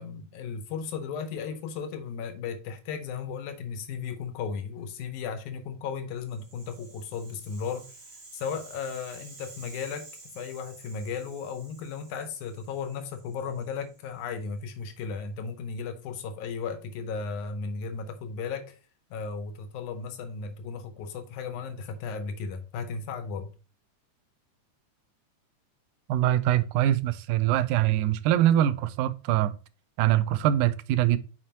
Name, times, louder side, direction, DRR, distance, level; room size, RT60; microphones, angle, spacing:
voice 1, 0.0-7.9 8.3-10.1 10.4-18.8 19.1-23.5, left 5 dB, 80° left, 2.2 m, -35 dB
Rattle (instrument), 6.2-14.4, right 3 dB, 45° right, 2.7 m, -51 dB
voice 2, 26.1-29.5 30.0-31.2, right 12 dB, 85° right, 2.0 m, -23 dB
7.3 x 4.8 x 2.8 m
omnidirectional pair, 3.5 m